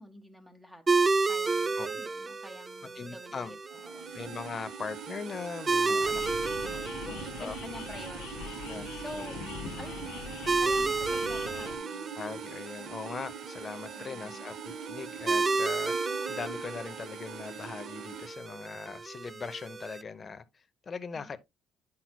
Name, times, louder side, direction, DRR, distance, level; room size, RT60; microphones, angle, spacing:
voice 1, 0.0-4.1 5.9-9.4 9.8-12.2 14.0-14.4 21.1-21.4, equal, 5° right, 1.6 m, -48 dB
sound 1, 0.9-20.0, right 3 dB, 25° right, 0.4 m, -33 dB
voice 2, 3.0-3.5 4.1-6.2 7.0-7.5 8.6-9.4 12.1-21.4, left 5 dB, 35° left, 0.7 m, -40 dB
sound 2, 3.6-18.3, right 8 dB, 85° right, 0.6 m, -44 dB
sound 3, 6.0-11.8, left 6 dB, 85° left, 1.4 m, -42 dB
9.6 x 6.0 x 2.2 m
cardioid pair, 85°, 0 cm